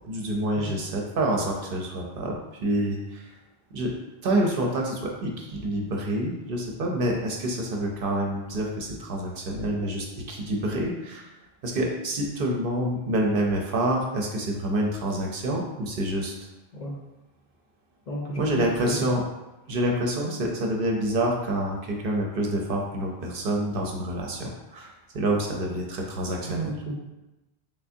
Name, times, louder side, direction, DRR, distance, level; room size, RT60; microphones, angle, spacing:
voice 1, 0.0-3.3 3.7-4.0 4.2-11.3 11.6-16.3 18.4-19.2 19.7-26.7, right 1 dB, 65° right, 0 dB, 0.7 m, -27 dB
voice 2, 18.1-19.1 20.2-20.3 26.4-27.0, right 1 dB, 50° left, -3 dB, 0.7 m, -33 dB
3.4 x 3.3 x 2.6 m, 1.0 s
omnidirectional pair, 1.1 m